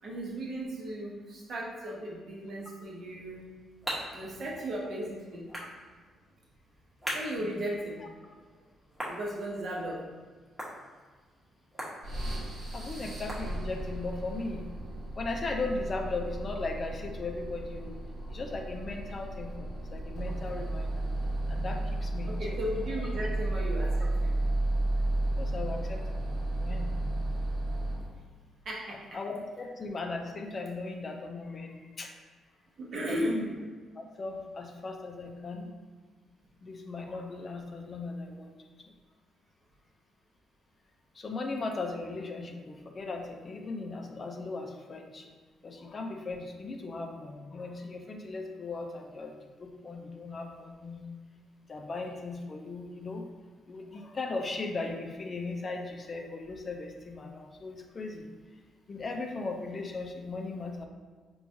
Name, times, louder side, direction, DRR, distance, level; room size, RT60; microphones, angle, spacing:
voice 1, 0.0-3.4 4.1-5.5 7.1-8.0 9.1-10.0 22.3-24.4 28.0-28.1 28.6-29.0 32.8-33.4, right 1 dB, 55° right, -3 dB, 0.8 m, -36 dB
sound 1, 3.1-14.0, equal, 5° right, 0.9 m, -43 dB
sound 2, 12.0-28.2, right 1 dB, 75° right, 1.2 m, -33 dB
voice 2, 12.7-14.7 15.2-17.9 18.2-21.1 21.5-22.4 25.4-26.9 28.9-32.1 33.1-33.5 33.9-35.7 36.6-38.5 38.9-39.0 41.1-45.3 45.6-51.0 51.7-53.2 53.7-58.3 58.9-60.9, left 3 dB, 40° left, 3 dB, 0.4 m, -38 dB
4.5 x 2.3 x 2.6 m, 1.4 s
cardioid pair, 90°, 0 cm